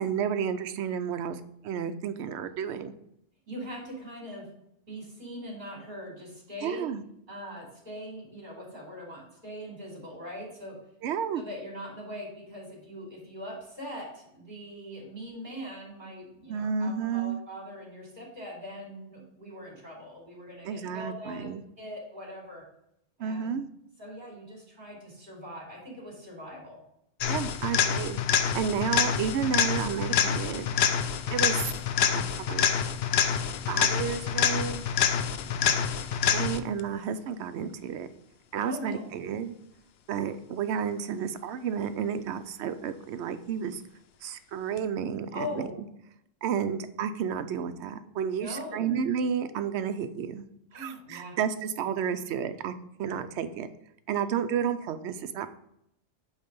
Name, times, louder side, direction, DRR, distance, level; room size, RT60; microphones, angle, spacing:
voice 1, 0.0-2.9 6.6-7.0 11.0-11.4 16.5-17.4 20.6-21.6 23.2-23.7 27.3-30.7 31.3-31.7 32.0-32.7 33.7-34.8 36.3-38.1 38.5-39.5 40.1-43.8 44.2-45.7 46.4-50.5 50.7-52.7 53.0-53.7 54.1-55.5, right 7 dB, 70° right, 10 dB, 0.8 m, -31 dB
voice 2, 3.5-4.5 4.9-6.9 7.3-10.8 11.3-21.5 21.8-22.6 23.2-23.6 24.0-26.8 28.4-28.7 38.7-39.1 45.3-45.7 48.4-48.9 50.7-51.4, equal, 40° right, -3 dB, 2.9 m, -41 dB
sound 1, 27.2-36.8 44.8-44.9, left 8 dB, 65° left, 0.7 m, -26 dB
8.1 x 3.3 x 5.2 m, 0.78 s
omnidirectional pair, 1.3 m